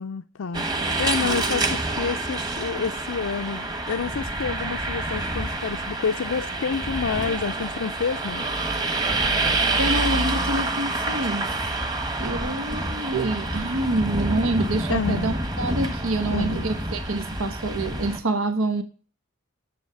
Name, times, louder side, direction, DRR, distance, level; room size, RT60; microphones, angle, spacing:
voice 1, 0.0-8.5 14.9-15.4 16.3-16.7, left 6 dB, 75° left, 0.5 m, -29 dB
sound 1, 0.5-18.2, right 2 dB, 20° right, 1.3 m, -27 dB
voice 2, 9.7-11.5 12.2-18.8, right 2 dB, 90° right, 1.1 m, -27 dB
10.5 x 7.1 x 6.8 m
head